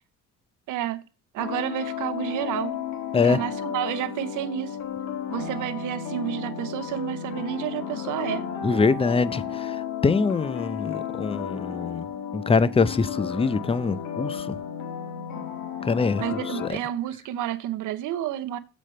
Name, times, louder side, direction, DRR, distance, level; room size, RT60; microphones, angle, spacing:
voice 1, 0.7-1.0 1.3-2.8 3.2-4.8 5.3-8.5 16.2-18.6, right 12 dB, 85° right, 0.7 m, -30 dB
sound 1, 1.4-16.7, left 8 dB, 80° left, 1.5 m, -33 dB
voice 2, 8.6-12.1 12.3-14.6 15.8-16.2 16.6-16.8, left 4 dB, 20° left, 0.5 m, -24 dB
7.5 x 5.1 x 4.2 m
cardioid pair, 90°, 30 cm